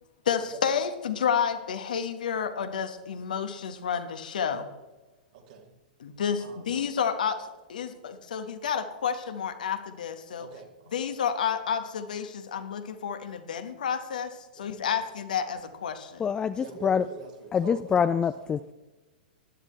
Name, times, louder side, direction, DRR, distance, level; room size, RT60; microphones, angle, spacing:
voice 1, 0.2-4.7 6.0-10.5 10.9-16.2, left 7 dB, 65° left, 1.2 m, -30 dB
voice 2, 5.3-5.7 6.4-6.7 10.4-11.0 14.5-15.0 16.6-17.8 18.1-18.2, right 6 dB, 55° right, 2.2 m, -45 dB
voice 3, 16.2-17.1 17.5-18.7, left 7 dB, 15° left, 0.3 m, -25 dB
15.0 x 11.0 x 3.2 m
figure-of-eight pair, 100°, 5 cm